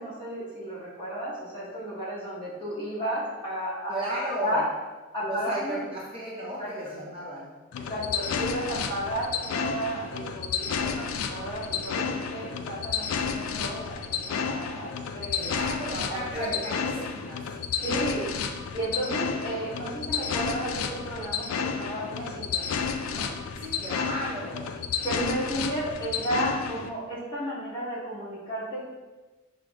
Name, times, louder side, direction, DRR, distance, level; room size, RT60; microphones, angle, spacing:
voice 1, 0.0-4.6 5.1-5.8 6.4-6.9 7.9-11.0 11.3-15.4 16.1-16.6 16.8-17.0 17.8-18.2 18.7-22.7 23.1-23.2 25.0-28.8, right 1 dB, 25° left, -8 dB, 1.4 m, -33 dB
voice 2, 3.9-4.6 5.2-7.5 15.4-16.8 17.1-17.4 23.6-24.7, right 1 dB, 25° right, -5 dB, 0.7 m, -34 dB
sound 1, 7.7-26.9, left 6 dB, 80° left, 0.3 m, -31 dB
6.0 x 2.1 x 3.5 m, 1.2 s
head